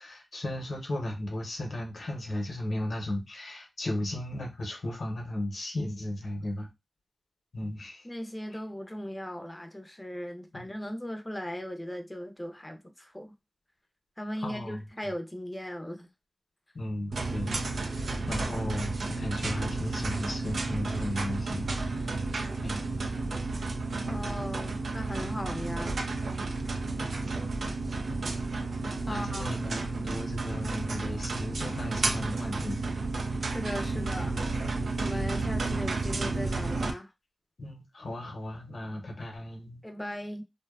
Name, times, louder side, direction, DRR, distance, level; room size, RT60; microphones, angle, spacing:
voice 1, 0.0-6.7 7.5-8.0 10.5-10.7 14.4-14.8 16.7-17.6 17.9-22.2 22.6-22.8 29.1-32.9 34.5-34.6 35.0-35.1 37.6-39.8, left 1 dB, 80° left, 0.8 m, -35 dB
voice 2, 8.0-13.3 14.2-16.1 24.1-26.1 29.1-29.5 33.4-34.4 35.0-37.1 39.8-40.4, equal, 15° left, 0.5 m, -38 dB
sound 1, 17.1-36.9, right 3 dB, 80° right, 0.4 m, -32 dB
2.6 x 2.2 x 2.3 m
cardioid pair, 50°, 0 cm